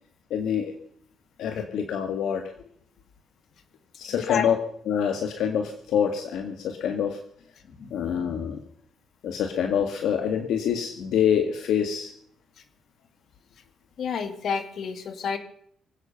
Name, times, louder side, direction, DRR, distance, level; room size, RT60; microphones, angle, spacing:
voice 1, 0.3-0.7 1.4-2.7 4.0-4.6 4.8-7.2 7.9-8.6 9.2-12.1, left 8 dB, 80° left, 6 dB, 1.7 m, -26 dB
voice 2, 7.7-8.1 14.0-15.4, left 6 dB, 65° left, 9 dB, 2.2 m, -30 dB
25.0 x 8.5 x 5.7 m, 0.64 s
cardioid pair, 90°, 0 cm